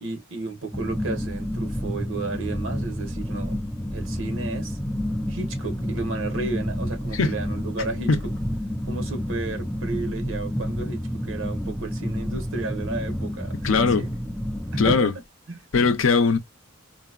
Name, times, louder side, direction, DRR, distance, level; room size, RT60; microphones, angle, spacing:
voice 1, 0.0-3.6 3.9-4.8 5.3-8.2 8.9-14.1 14.7-15.1 15.5-15.6, right 3 dB, 75° right, 0.9 m, -33 dB
sound 1, 0.7-15.0, equal, 5° left, 0.3 m, -29 dB
voice 2, 13.6-14.0 14.8-15.1 15.7-16.4, left 4 dB, 80° left, 0.6 m, -19 dB
3.9 x 2.0 x 2.3 m
head